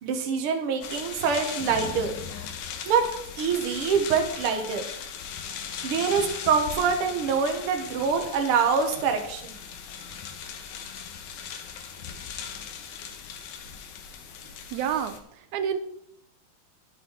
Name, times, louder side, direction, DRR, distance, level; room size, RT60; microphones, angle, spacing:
voice 1, 0.0-2.1 2.9-3.0 3.4-4.8 5.8-9.6, right 6 dB, 60° right, 4 dB, 1.7 m, -25 dB
sound 1, 0.8-15.2, left 7 dB, 90° left, 2.6 m, -38 dB
voice 2, 14.4-15.8, right 8 dB, 75° right, 9 dB, 2.0 m, -30 dB
9.2 x 7.5 x 4.5 m, 0.74 s
omnidirectional pair, 3.5 m